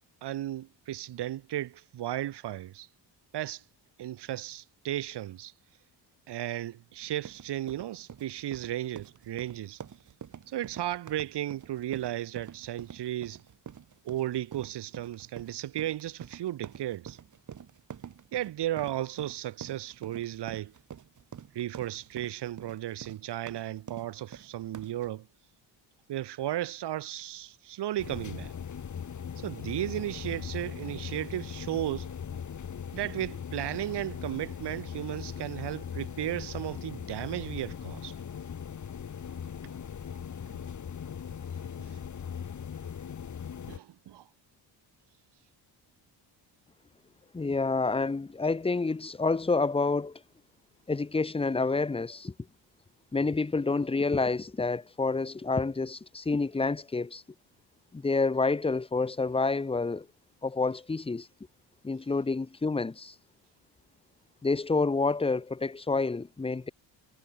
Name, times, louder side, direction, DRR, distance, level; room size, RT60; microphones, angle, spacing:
voice 1, 0.2-2.9 3.3-3.6 4.0-5.5 6.3-9.8 10.5-13.4 14.0-17.2 18.3-20.7 21.5-25.3 26.1-28.5 29.4-32.1 32.9-38.1 39.6-39.7 43.7-44.2, right 13 dB, 65° right, 1.5 m, -35 dB
sound 1, 7.0-25.1, right 8 dB, 40° right, 2.9 m, -47 dB
sound 2, 28.0-43.8, left 7 dB, 40° left, 5.6 m, -39 dB
voice 2, 47.3-50.2 50.9-52.3 53.1-57.2 57.9-60.1 60.4-61.3 61.8-63.1 64.4-66.7, left 3 dB, 15° left, 1.1 m, -28 dB
cardioid pair, 160°, 44 cm